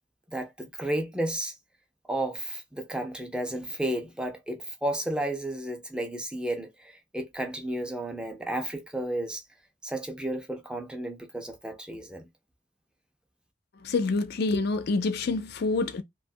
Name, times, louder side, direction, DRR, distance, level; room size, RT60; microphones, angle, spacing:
voice 1, 0.3-1.5 2.1-9.4 9.8-12.3, right 1 dB, 5° right, 0.4 m, -32 dB
voice 2, 13.8-16.0, left 3 dB, 55° left, 0.4 m, -27 dB
2.9 x 2.2 x 2.6 m
head